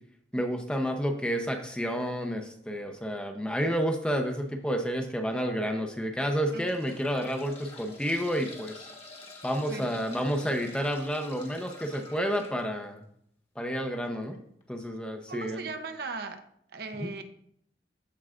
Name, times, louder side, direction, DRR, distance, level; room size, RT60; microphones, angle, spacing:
voice 1, 0.3-8.9 9.4-13.0 13.6-14.4 14.7-15.7 17.0-17.1, equal, 5° left, 3 dB, 0.7 m, -30 dB
sound 1, 4.3-4.5 5.2-5.3 6.2-12.6 14.2-14.3 14.6-14.7, left 2 dB, 35° left, 1.4 m, -48 dB
voice 2, 15.3-16.4 16.7-17.2, right 3 dB, 60° right, 7 dB, 0.7 m, -37 dB
14.0 x 4.7 x 2.5 m, 0.70 s
head